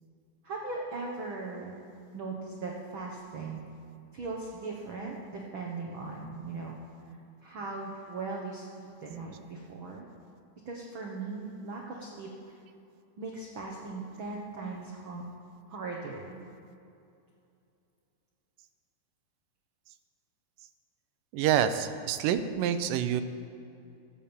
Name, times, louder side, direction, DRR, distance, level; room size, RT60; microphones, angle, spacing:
voice 1, 0.4-1.8 2.1-3.6 4.1-6.8 7.1-7.2 7.4-10.0 10.6-12.6 13.2-15.3 15.7-16.4, right 3 dB, 60° right, -1 dB, 1.4 m, -39 dB
voice 2, 21.3-23.2, right 9 dB, 80° right, 9 dB, 2.3 m, -27 dB
14.5 x 8.5 x 7.2 m, 2.6 s
omnidirectional pair, 3.9 m